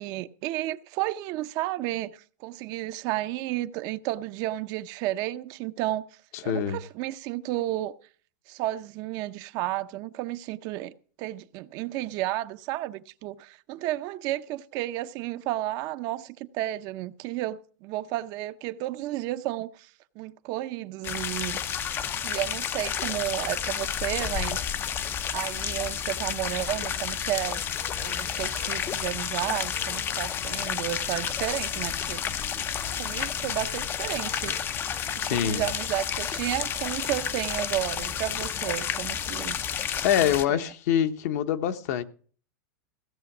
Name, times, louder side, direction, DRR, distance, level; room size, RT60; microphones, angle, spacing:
voice 1, 0.0-6.0 6.4-7.9 8.5-10.9 11.2-19.9 20.2-21.6 22.2-24.7 25.3-27.6 28.0-32.2 32.6-32.7 32.9-34.7 35.1-39.6 40.2-40.6, right 15 dB, 40° right, 0.6 m, -32 dB
voice 2, 6.3-6.8 35.2-35.6 40.0-42.0, left 10 dB, 60° left, 1.1 m, -25 dB
sound 1, 21.0-40.5, left 8 dB, 25° left, 0.5 m, -31 dB
16.0 x 6.8 x 6.0 m
supercardioid pair, 150°, 10 cm